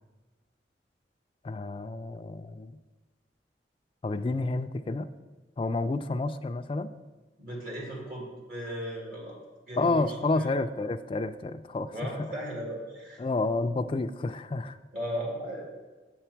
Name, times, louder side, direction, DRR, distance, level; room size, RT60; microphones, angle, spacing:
voice 1, 1.4-2.8 4.0-5.1 5.6-6.9 9.8-12.3 13.2-14.8, left 2 dB, 30° left, 9 dB, 0.3 m, -30 dB
voice 2, 7.4-9.4 9.7-10.5 11.9-13.2 14.9-15.7, equal, 50° right, -3 dB, 1.8 m, -36 dB
7.3 x 7.1 x 4.5 m, 1.3 s
head